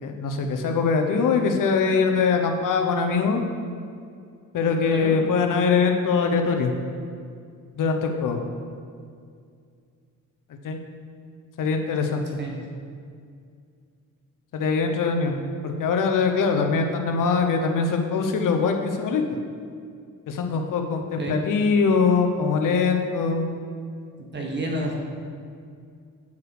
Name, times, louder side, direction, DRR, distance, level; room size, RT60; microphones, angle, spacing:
voice 1, 0.0-3.4 4.5-6.7 7.8-8.4 10.6-10.8 11.6-12.4 14.5-15.4 15.6-19.2 20.3-23.5, left 5 dB, 75° left, 4 dB, 0.8 m, -22 dB
voice 2, 24.3-24.9, right 1 dB, 35° right, 0 dB, 1.1 m, -29 dB
8.2 x 4.9 x 4.8 m, 2.3 s
wide cardioid pair, 165°, 32 cm